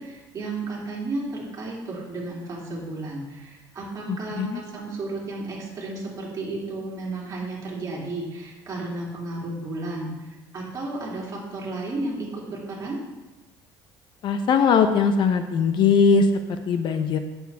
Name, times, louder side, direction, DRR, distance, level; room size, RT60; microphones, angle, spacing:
voice 1, 0.0-13.0, right 2 dB, 35° right, -4 dB, 2.8 m, -33 dB
voice 2, 14.2-17.2, left 5 dB, 50° left, 8 dB, 0.7 m, -20 dB
9.2 x 7.1 x 3.5 m, 1.1 s
cardioid pair, 125°, 10 cm